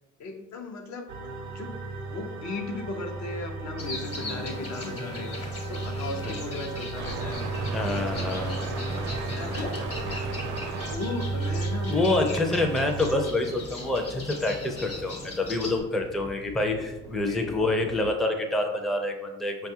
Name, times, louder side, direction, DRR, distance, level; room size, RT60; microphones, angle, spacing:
voice 1, 0.2-1.7 2.1-10.4 10.9-12.7 17.1-17.6, left 3 dB, 65° left, 4 dB, 0.6 m, -37 dB
sound 1, 1.1-13.3, right 3 dB, 75° right, 0.6 m, -33 dB
sound 2, 3.8-15.8, left 2 dB, 50° left, 1.1 m, -39 dB
voice 2, 4.2-5.0 7.7-8.7 11.9-19.7, left 2 dB, ahead, 3 dB, 0.4 m, -27 dB
sound 3, 13.0-18.1, left 2 dB, 85° left, 0.9 m, -47 dB
5.3 x 2.3 x 2.7 m, 1.1 s
cardioid pair, 90°, 30 cm